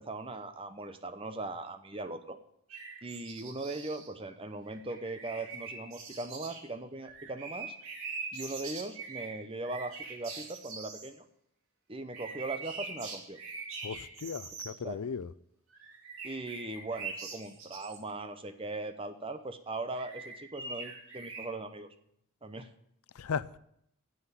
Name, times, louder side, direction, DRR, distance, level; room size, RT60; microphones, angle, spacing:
voice 1, 0.0-2.4 3.0-7.7 8.3-11.2 11.9-13.4 14.7-15.1 16.2-21.9 22.4-22.7, right 2 dB, 25° right, 0.8 m, -39 dB
sound 1, 2.7-4.1 4.7-6.7 7.0-11.1 12.1-14.7 15.7-18.0 19.9-21.5, right 4 dB, 70° right, 2.5 m, -43 dB
voice 2, 13.8-15.3 23.2-23.6, left 6 dB, 90° left, 0.5 m, -36 dB
9.6 x 7.8 x 8.4 m
head